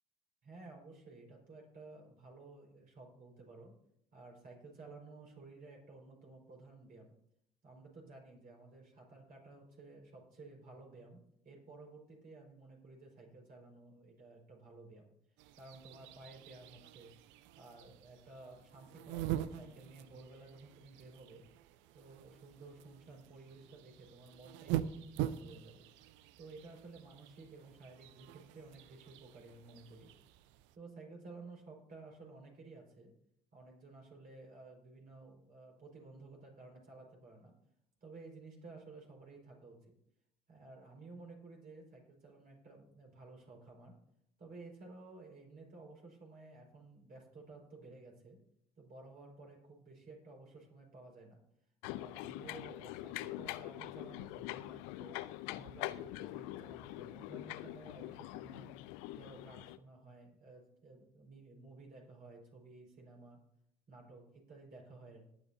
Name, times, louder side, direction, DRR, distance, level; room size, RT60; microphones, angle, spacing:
voice 1, 0.4-3.7 4.1-7.1 7.6-15.1 15.6-17.1 17.6-21.4 21.9-25.8 26.4-30.1 30.7-33.1 33.5-37.5 38.0-39.9 40.5-44.0 44.4-48.4 48.8-51.4 51.9-55.2 55.5-58.7 59.1-63.4 63.9-65.3, right 3 dB, 45° right, 0 dB, 5.0 m, -54 dB
sound 1, 15.4-30.8, right 12 dB, 65° right, 0.6 m, -44 dB
sound 2, 51.8-59.8, left 17 dB, 70° left, 0.5 m, -44 dB
19.5 x 8.9 x 2.8 m, 0.73 s
hypercardioid pair, 60°, 21 cm